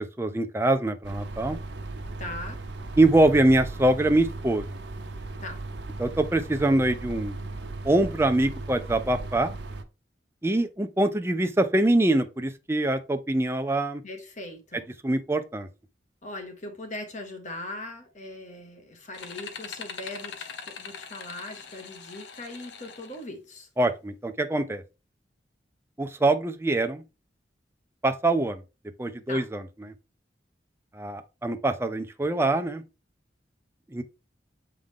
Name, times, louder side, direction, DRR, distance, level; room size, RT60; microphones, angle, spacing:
voice 1, 0.0-1.6 3.0-4.6 6.0-7.4 7.8-9.5 10.4-14.0 15.0-15.7 23.8-24.8 26.0-27.0 28.0-28.6 29.0-29.6 30.9-32.8 33.9-34.0, right 2 dB, 15° right, 0.5 m, -24 dB
sound 1, 1.0-9.8, right 2 dB, 80° right, 0.8 m, -37 dB
voice 2, 2.2-2.6 5.4-5.6 14.0-14.9 16.2-23.7 29.3-29.4, left 1 dB, 40° left, 1.5 m, -40 dB
sound 2, 19.1-23.2, left 6 dB, 80° left, 0.9 m, -42 dB
7.5 x 3.8 x 3.6 m
head